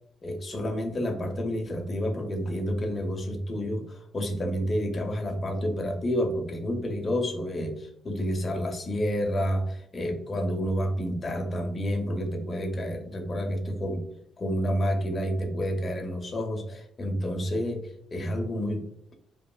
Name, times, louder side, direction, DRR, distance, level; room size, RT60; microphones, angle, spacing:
voice 1, 0.2-14.0 14.4-17.8 18.1-18.8, equal, 35° left, 2 dB, 0.6 m, -29 dB
3.0 x 2.3 x 2.3 m, 0.74 s
cardioid pair, 90°, 0 cm